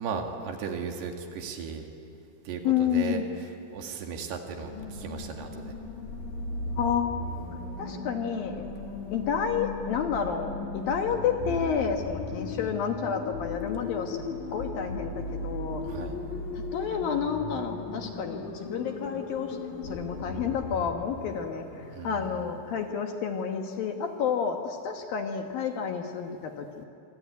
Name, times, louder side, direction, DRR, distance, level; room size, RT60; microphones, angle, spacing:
voice 1, 0.0-1.9 2.5-3.2 3.7-5.7 15.8-16.2 21.9-22.4, right 5 dB, 65° right, 3 dB, 3.9 m, -36 dB
voice 2, 2.6-3.3 6.8-7.1 7.8-8.6 9.1-14.2 14.5-15.8 16.5-19.6 19.8-26.9, left 7 dB, 65° left, 4 dB, 2.6 m, -30 dB
sound 1, 4.6-22.8, left 2 dB, 45° left, 3.7 m, -37 dB
26.5 x 24.0 x 9.4 m, 2.7 s
omnidirectional pair, 5.2 m